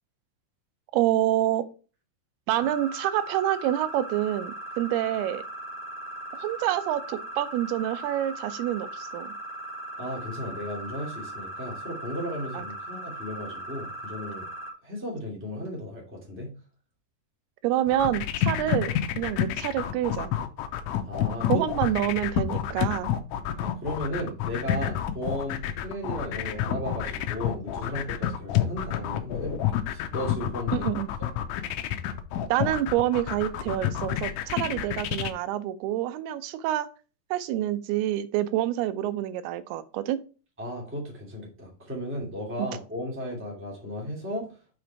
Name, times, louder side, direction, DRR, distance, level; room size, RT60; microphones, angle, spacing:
voice 1, 0.9-1.7 2.5-5.4 6.3-9.3 12.5-12.7 17.6-20.3 21.5-23.1 30.7-31.1 32.5-36.9 37.3-40.2 42.6-42.7, right 13 dB, 90° right, 13 dB, 2.6 m, -27 dB
sound 1, 2.6-14.7, right 1 dB, 70° right, 0.9 m, -39 dB
voice 2, 10.0-14.4 14.8-16.5 21.0-21.6 23.6-29.6 29.9-30.9 40.6-44.8, equal, 5° right, -2 dB, 1.4 m, -35 dB
sound 2, 17.9-35.3, left 11 dB, 85° left, 1.8 m, -28 dB
6.0 x 5.1 x 4.5 m, 0.36 s
omnidirectional pair, 4.4 m